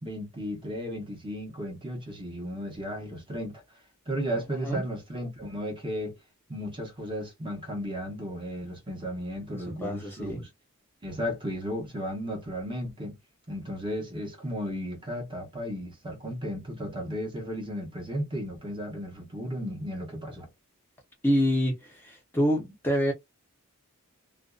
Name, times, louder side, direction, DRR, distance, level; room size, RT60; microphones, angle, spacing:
voice 1, 0.0-3.6 4.1-6.2 6.5-10.5 11.0-13.2 13.5-20.5, equal, 20° right, 1.0 m, -34 dB
voice 2, 9.8-10.4 21.2-23.1, equal, 10° left, 0.7 m, -26 dB
2.5 x 2.3 x 2.3 m
head